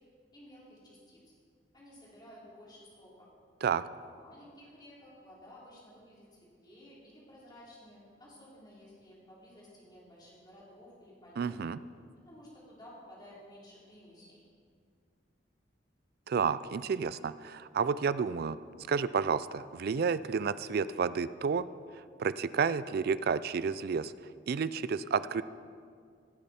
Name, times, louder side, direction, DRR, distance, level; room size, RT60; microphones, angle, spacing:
voice 1, 0.3-1.2 1.7-3.3 4.0-6.3 6.6-11.6 12.3-14.4, equal, 25° left, -7 dB, 3.5 m, -54 dB
voice 2, 11.4-11.8 16.3-18.6 18.9-21.7 22.2-24.1 24.5-25.4, right 6 dB, 55° right, 16 dB, 0.3 m, -30 dB
17.5 x 8.8 x 4.3 m, 2.1 s
head